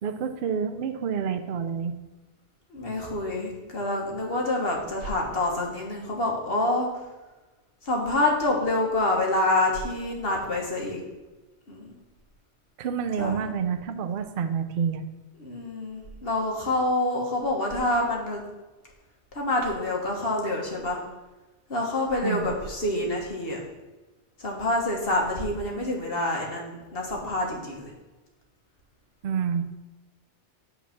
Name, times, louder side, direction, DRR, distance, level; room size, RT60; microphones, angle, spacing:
voice 1, 0.0-2.0 12.8-15.1 22.2-22.5 29.2-29.6, right 7 dB, 60° right, 8 dB, 0.7 m, -28 dB
voice 2, 2.7-6.9 7.8-11.0 11.7-11.9 13.2-13.4 15.4-18.4 19.3-21.0 21.7-23.6 24.4-27.9, left 2 dB, 55° left, -1 dB, 1.7 m, -27 dB
8.7 x 4.1 x 5.8 m, 1.1 s
omnidirectional pair, 1.2 m